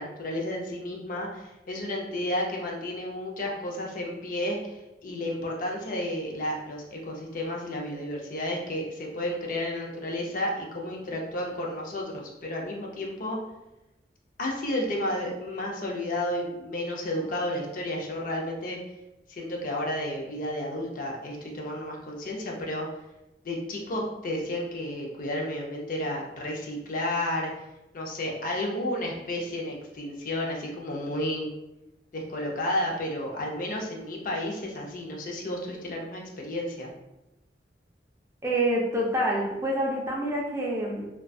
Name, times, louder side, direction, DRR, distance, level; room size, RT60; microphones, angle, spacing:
voice 1, 0.0-13.4 14.4-18.8 19.3-22.9 23.4-27.5 27.9-31.5 32.1-36.9, left 1 dB, 50° left, -1 dB, 0.4 m, -32 dB
voice 2, 38.4-41.1, right 1 dB, 15° right, -2 dB, 0.4 m, -27 dB
2.3 x 2.2 x 2.5 m, 0.96 s
head